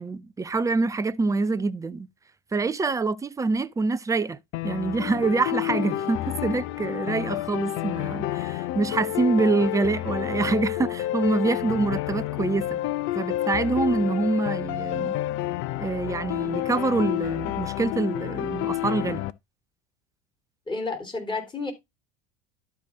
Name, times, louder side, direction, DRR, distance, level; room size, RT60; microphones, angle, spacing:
voice 1, 0.0-2.1 2.5-4.4 4.6-12.8 13.1-15.2 15.8-19.2, right 3 dB, 10° right, 0.5 m, -26 dB
sound 1, 4.5-19.3, left 14 dB, 45° left, 0.6 m, -29 dB
voice 2, 20.7-21.7, left 3 dB, 15° left, 3.4 m, -31 dB
12.0 x 4.8 x 3.7 m
figure-of-eight pair, 70°, 29 cm